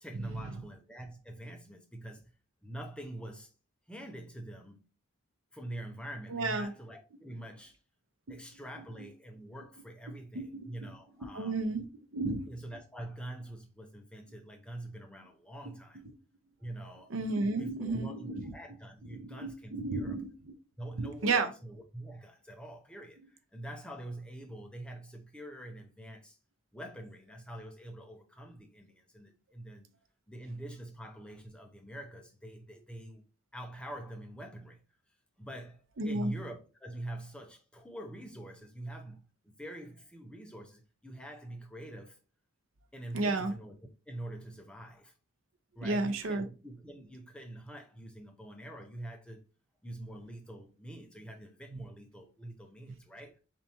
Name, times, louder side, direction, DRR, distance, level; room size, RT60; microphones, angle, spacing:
voice 1, 0.0-2.3 2.6-3.5 3.9-4.8 5.5-7.8 8.3-11.6 12.5-16.0 16.6-17.1 17.4-20.1 20.8-26.4 26.7-29.9 30.3-33.2 33.5-34.8 35.4-42.2 42.9-43.7 44.1-45.1 45.8-49.4 49.8-53.4, right 1 dB, 5° left, 0.5 m, -45 dB
voice 2, 6.3-6.7 8.3-8.4 9.0-9.1 10.3-10.9 11.2-11.9 12.1-12.5 17.1-18.5 19.1-20.5 21.0-21.5 36.0-36.3 43.1-43.5 45.8-46.5 51.7-51.8 52.9-53.0, right 3 dB, 70° right, 0.6 m, -33 dB
4.0 x 3.5 x 2.8 m
head